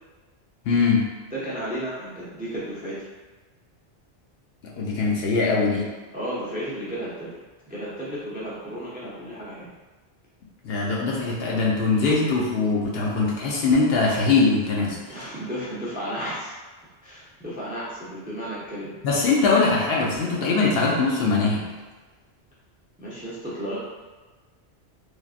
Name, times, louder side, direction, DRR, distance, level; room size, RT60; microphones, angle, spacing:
voice 1, 0.7-1.1 4.8-5.9 10.6-15.0 19.0-21.6, left 4 dB, 65° left, -4 dB, 0.8 m, -21 dB
voice 2, 1.3-3.1 6.1-7.3 7.7-9.7 15.1-16.5 17.0-18.9 23.0-23.8, equal, 10° right, -8 dB, 0.4 m, -33 dB
3.2 x 2.5 x 2.4 m, 1.3 s
omnidirectional pair, 1.2 m